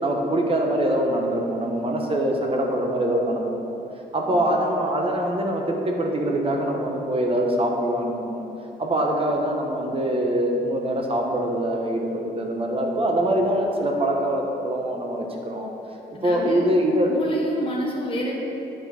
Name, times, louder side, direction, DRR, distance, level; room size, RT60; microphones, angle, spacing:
voice 1, 0.0-3.8 4.1-8.4 8.8-15.7 16.2-17.1, right 1 dB, 30° right, 1 dB, 1.1 m, -24 dB
voice 2, 16.1-16.7 17.1-18.3, equal, 30° left, -3 dB, 1.2 m, -28 dB
9.0 x 6.0 x 4.3 m, 3.0 s
cardioid pair, 110°, 19 cm